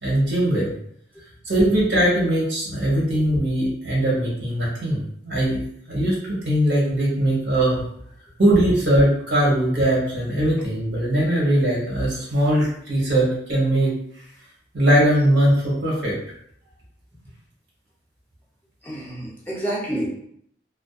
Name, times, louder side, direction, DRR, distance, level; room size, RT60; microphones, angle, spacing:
voice 1, 0.0-0.7 1.4-5.6 5.9-7.8 8.4-13.9 14.7-16.1, right 1 dB, 65° right, -4 dB, 0.9 m, -20 dB
voice 2, 18.8-20.1, right 1 dB, 10° left, -5 dB, 0.6 m, -29 dB
2.5 x 2.2 x 2.3 m, 0.68 s
head